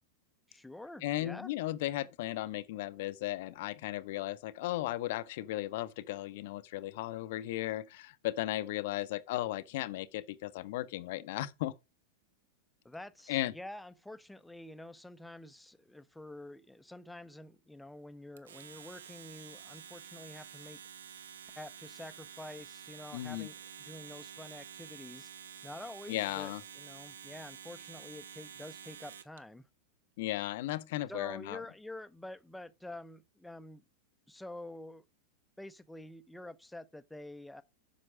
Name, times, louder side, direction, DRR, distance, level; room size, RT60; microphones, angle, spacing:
voice 1, 0.5-1.5 12.8-20.8 21.6-23.6 23.9-25.3 25.6-29.7 31.1-33.8 34.3-35.0 35.6-37.6, left 1 dB, 5° left, 0.7 m, -48 dB
voice 2, 1.0-11.7 13.3-13.5 23.1-23.5 26.1-26.6 30.2-31.6, left 15 dB, 50° left, 0.6 m, -36 dB
Domestic sounds home sounds, 18.4-29.4, right 8 dB, 65° right, 0.6 m, -50 dB
7.6 x 6.0 x 4.9 m
figure-of-eight pair, 90°, 0 cm